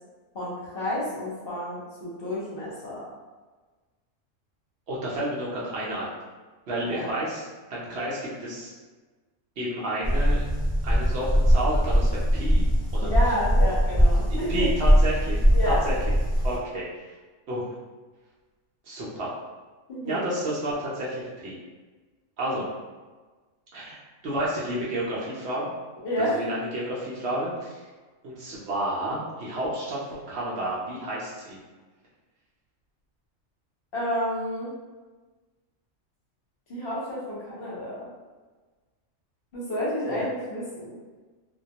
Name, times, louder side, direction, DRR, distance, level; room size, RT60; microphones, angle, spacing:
voice 1, 0.3-3.0 6.8-7.1 13.0-14.7 15.5-15.8 19.9-20.3 26.0-26.4 33.9-34.7 36.7-38.1 39.5-41.0, left 1 dB, 55° left, -7 dB, 0.8 m, -30 dB
voice 2, 4.9-6.2 6.7-7.4 7.7-8.7 9.6-10.4 10.8-12.7 13.0-13.2 14.3-16.0 16.4-17.1 17.5-17.6 18.9-19.3 20.0-21.6 22.4-22.7 23.7-25.7 26.2-27.8 28.2-31.6 40.1-40.2, right 1 dB, 65° right, -6 dB, 0.8 m, -31 dB
sound 1, 10.0-16.6, equal, 20° right, 0.6 m, -21 dB
2.2 x 2.2 x 2.7 m, 1.3 s
omnidirectional pair, 1.4 m